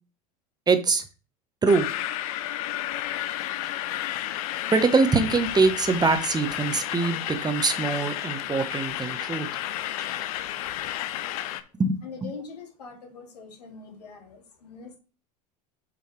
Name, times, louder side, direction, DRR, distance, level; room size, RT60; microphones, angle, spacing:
voice 1, 0.7-1.0 1.6-1.9 4.7-9.5 11.8-12.0, right 4 dB, 20° right, 9 dB, 1.1 m, -23 dB
sound 1, 1.7-11.6, left 13 dB, 65° left, 0.8 m, -32 dB
voice 2, 12.0-15.0, left 5 dB, 80° left, 2 dB, 2.3 m, -43 dB
7.3 x 5.4 x 3.3 m, 0.34 s
hypercardioid pair, 80°, 20 cm